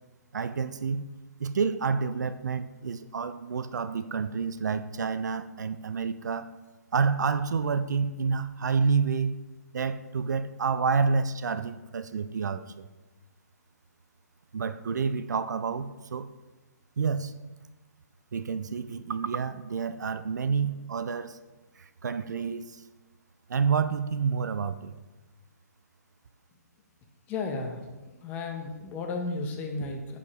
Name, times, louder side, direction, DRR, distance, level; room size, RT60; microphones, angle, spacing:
voice 1, 0.3-1.1 1.4-6.5 6.9-9.4 9.7-12.9 14.5-16.3 17.0-17.3 18.3-21.4 21.8-22.8 23.5-24.9, right 5 dB, 75° right, 13 dB, 0.4 m, -29 dB
voice 2, 27.3-27.9 28.2-30.2, left 3 dB, 15° left, 3 dB, 0.7 m, -33 dB
8.0 x 4.9 x 2.9 m, 1.2 s
hypercardioid pair, 145°, 9 cm